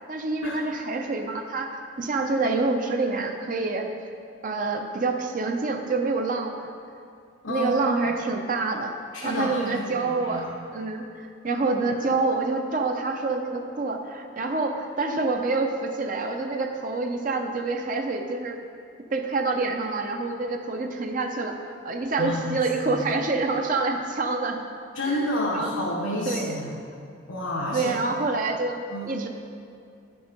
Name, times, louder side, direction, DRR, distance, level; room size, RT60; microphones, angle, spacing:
voice 1, 0.1-3.9 4.4-6.7 7.5-8.9 9.2-10.4 10.7-18.6 19.1-21.6 21.8-24.6 25.1-25.2 25.5-25.7 26.3-26.6 27.7-28.8 29.0-29.3, right 3 dB, 40° right, 4 dB, 0.6 m, -27 dB
voice 2, 9.1-10.5 22.2-23.0 24.9-26.7 27.3-27.9 28.9-29.3, left 1 dB, 80° left, -4 dB, 1.1 m, -30 dB
8.9 x 6.2 x 5.2 m, 2.5 s
head